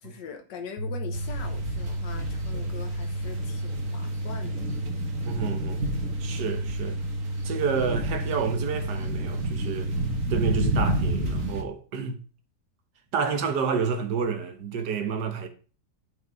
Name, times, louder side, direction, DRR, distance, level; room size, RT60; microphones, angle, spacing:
voice 1, 0.0-4.6, left 6 dB, 85° left, 1.8 m, -42 dB
sound 1, 0.8-10.8, right 1 dB, 65° left, 2.3 m, -32 dB
sound 2, 1.1-11.6, right 1 dB, 50° right, 1.9 m, -32 dB
voice 2, 5.3-5.8 6.2-7.0 7.4-9.9 10.3-12.1 13.1-15.5, right 6 dB, 75° right, 1.8 m, -29 dB
9.5 x 5.9 x 4.7 m
omnidirectional pair, 1.8 m